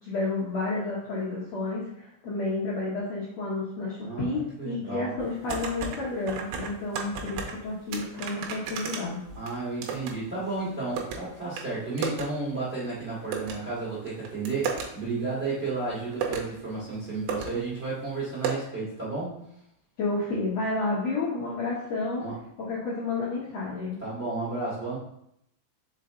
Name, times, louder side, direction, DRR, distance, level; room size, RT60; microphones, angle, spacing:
voice 1, 0.0-9.2 20.0-22.2 22.6-24.0, left 3 dB, 70° left, -7 dB, 1.6 m, -31 dB
voice 2, 4.0-5.1 9.3-19.4 22.2-22.3 24.0-25.0, right 3 dB, 25° right, -9 dB, 1.6 m, -32 dB
sound 1, 5.2-6.0 6.3-7.6 7.9-10.1 10.4-11.2 11.6-11.7 12.0-12.3 12.6-12.7 13.3-13.5 14.1-14.9 15.7-15.8 16.1-16.5 17.0-17.1 17.3-17.5 17.8-17.9 18.4-18.5, right 6 dB, 85° right, 2.9 m, -32 dB
5.6 x 5.0 x 3.8 m, 0.76 s
omnidirectional pair, 4.9 m